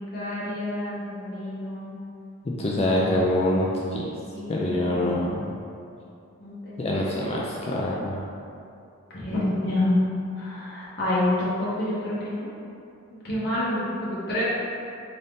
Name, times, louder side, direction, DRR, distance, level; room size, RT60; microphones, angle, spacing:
voice 1, 0.0-2.0 2.9-3.2 4.3-5.3 6.4-7.3 9.1-9.9 10.4-12.5 13.2-14.4, left 1 dB, 50° left, -8 dB, 0.9 m, -29 dB
voice 2, 2.4-4.2 4.5-5.5 6.8-8.2, left 1 dB, 30° left, -4 dB, 0.3 m, -25 dB
3.9 x 2.7 x 3.5 m, 2.5 s
head